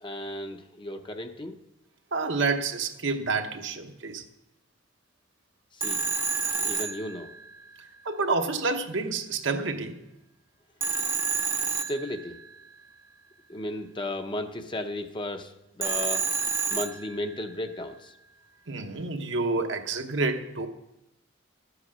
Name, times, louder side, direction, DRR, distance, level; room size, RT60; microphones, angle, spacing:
voice 1, 0.0-1.6 5.8-6.0 6.4-7.3 11.7-12.4 13.5-16.3 16.7-18.1, left 1 dB, 25° left, 7 dB, 0.7 m, -35 dB
voice 2, 2.1-4.2 8.0-10.0 18.7-20.7, right 3 dB, 65° right, 5 dB, 1.0 m, -28 dB
Telephone, 5.8-7.7 10.8-12.6 15.8-17.5, right 4 dB, 15° right, 0.7 m, -29 dB
12.5 x 7.9 x 6.1 m, 0.94 s
head